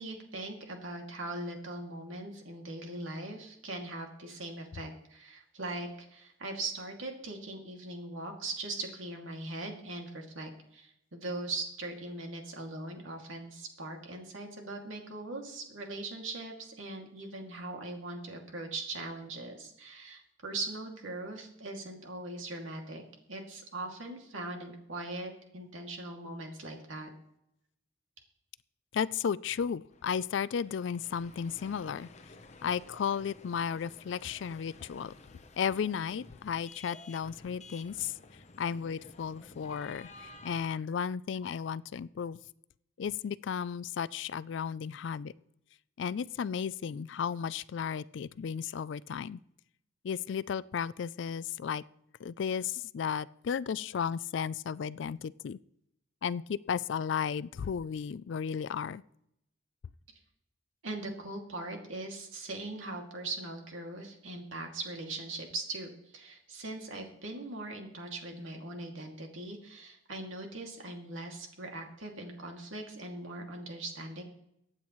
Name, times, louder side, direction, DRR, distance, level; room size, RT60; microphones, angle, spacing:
voice 1, 0.0-23.0 23.3-27.1 60.8-74.2, right 2 dB, 80° right, 2 dB, 2.4 m, -40 dB
voice 2, 28.9-32.1 32.6-35.1 35.6-38.1 38.6-42.4 43.0-45.3 46.0-49.4 50.0-51.8 52.2-55.6 56.2-59.0, left 7 dB, 65° left, 19 dB, 0.3 m, -34 dB
sound 1, 29.9-40.7, left 3 dB, 35° left, 0.8 m, -53 dB
23.5 x 8.8 x 3.1 m, 0.80 s
head